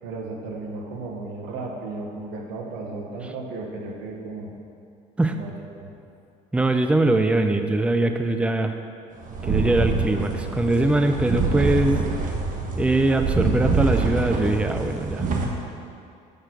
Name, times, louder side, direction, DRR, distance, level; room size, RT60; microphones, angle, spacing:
voice 1, 0.0-4.5 5.3-5.9, right 3 dB, 80° right, 1 dB, 1.4 m, -34 dB
voice 2, 6.5-8.8 9.4-12.0 12.8-15.3, right 2 dB, 5° right, 7 dB, 0.5 m, -22 dB
sound 1, 9.2-15.5, right 4 dB, 50° right, 1.3 m, -25 dB
7.0 x 6.4 x 6.0 m, 2.5 s
supercardioid pair, 95°, 18 cm